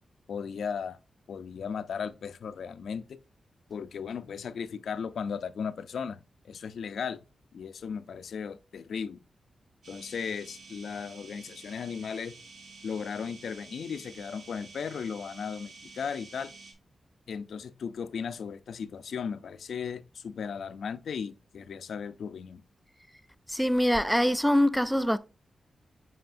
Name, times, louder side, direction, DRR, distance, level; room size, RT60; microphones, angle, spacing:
voice 1, 0.3-1.0 1.3-3.2 3.7-7.2 7.5-9.2 9.9-12.4 12.8-16.5 17.3-22.6, left 6 dB, 75° left, 0.4 m, -36 dB
sound 1, 9.8-16.7, right 4 dB, 80° right, 2.0 m, -50 dB
voice 2, 23.5-25.2, equal, ahead, 0.4 m, -24 dB
7.8 x 4.9 x 2.6 m
wide cardioid pair, 140°, 0 cm